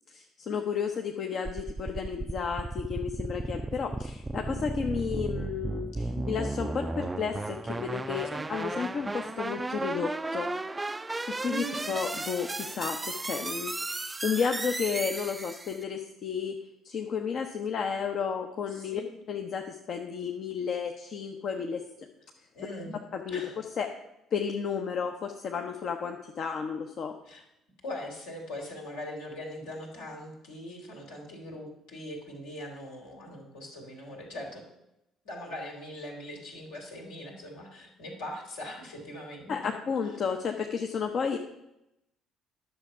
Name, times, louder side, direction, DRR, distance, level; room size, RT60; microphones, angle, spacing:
voice 1, 0.1-10.5 11.4-16.6 16.8-19.0 19.3-22.1 23.1-24.0 24.3-27.2 39.5-41.4, left 6 dB, 50° left, 4 dB, 0.8 m, -32 dB
sound 1, 1.4-15.8, right 2 dB, 15° right, 0.4 m, -34 dB
voice 2, 11.5-11.8 18.7-19.0 22.5-23.0 23.3-23.5 27.2-27.4 27.8-34.6 35.2-39.7, equal, 70° left, -1 dB, 2.7 m, -41 dB
10.5 x 6.7 x 5.6 m, 0.88 s
figure-of-eight pair, 50°, 0 cm